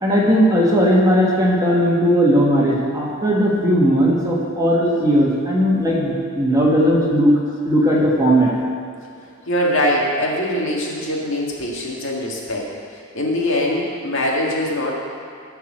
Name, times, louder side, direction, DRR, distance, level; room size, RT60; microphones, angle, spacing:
voice 1, 0.0-7.3 7.6-8.5, equal, 15° right, -4 dB, 1.7 m, -17 dB
voice 2, 9.5-14.9, left 1 dB, 65° left, -2 dB, 2.0 m, -22 dB
13.5 x 4.7 x 7.5 m, 2.5 s
head